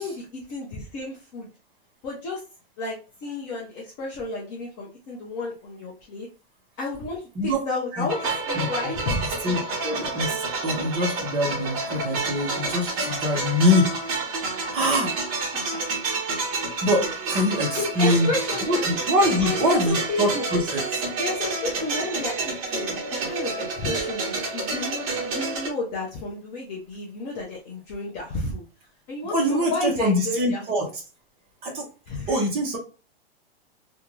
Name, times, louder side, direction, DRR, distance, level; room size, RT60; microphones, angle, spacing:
voice 1, 0.0-1.5 2.0-2.4 2.8-6.3 6.8-9.4 10.5-10.6 13.0-13.2 17.8-18.9 19.4-20.5 21.1-22.4 22.7-28.6 29.1-30.6 32.1-32.4, left 3 dB, 20° left, -3 dB, 0.4 m, -32 dB
voice 2, 7.9-8.7 9.4-13.9 14.7-15.1 16.8-18.3 18.7-21.0 29.3-30.9 31.6-31.8 32.3-32.8, left 1 dB, 20° right, 0 dB, 0.6 m, -24 dB
sound 1, 8.1-25.7, right 3 dB, 40° right, 1.0 m, -29 dB
2.5 x 2.2 x 3.0 m, 0.33 s
hypercardioid pair, 150°, 30 cm